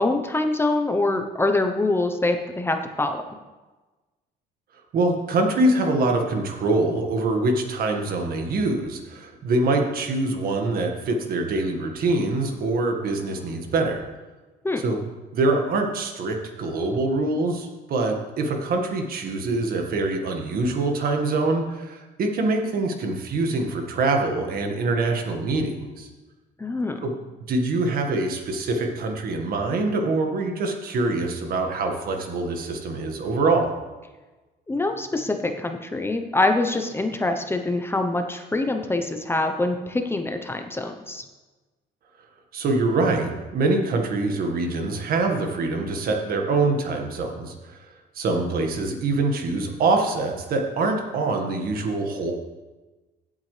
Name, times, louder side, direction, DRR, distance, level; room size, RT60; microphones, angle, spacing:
voice 1, 0.0-3.2 14.6-14.8 26.6-27.0 34.7-41.2, left 2 dB, 15° left, 5 dB, 0.9 m, -24 dB
voice 2, 4.9-14.0 14.8-15.0 15.3-26.1 27.0-27.1 27.5-33.7 42.5-47.8 48.2-52.3, right 2 dB, 60° right, 3 dB, 1.8 m, -24 dB
16.5 x 8.3 x 3.4 m, 1.2 s
cardioid pair, 110°, 17 cm